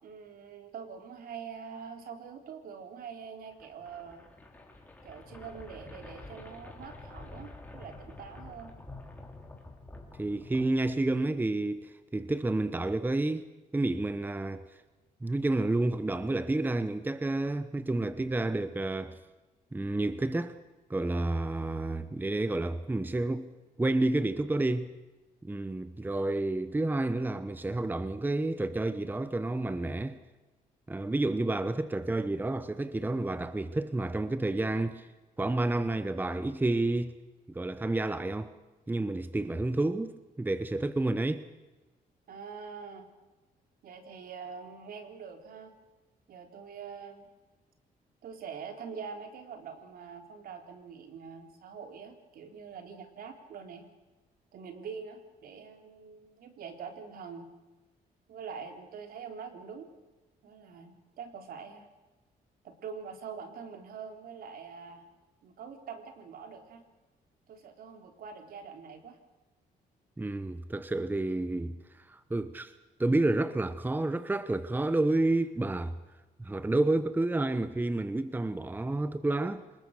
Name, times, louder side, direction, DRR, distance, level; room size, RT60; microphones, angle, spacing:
voice 1, 0.0-4.3 5.0-8.7 42.3-43.1 43.8-45.7 46.3-47.3 48.2-53.9 54.5-57.5 58.3-59.9 60.4-61.9 62.6-65.1 65.4-66.8 67.5-69.2, right 6 dB, 70° right, 3.8 m, -44 dB
sound 1, 3.5-11.5, left 2 dB, 10° left, 3.8 m, -48 dB
voice 2, 10.2-14.6 15.2-19.2 19.7-20.6 20.9-24.9 25.4-30.2 30.9-35.1 35.4-37.1 37.5-38.5 38.9-41.4 70.2-72.7 73.0-75.9 76.4-79.6, right 2 dB, 10° right, 1.0 m, -30 dB
27.5 x 20.0 x 6.6 m
cardioid pair, 105°, 16 cm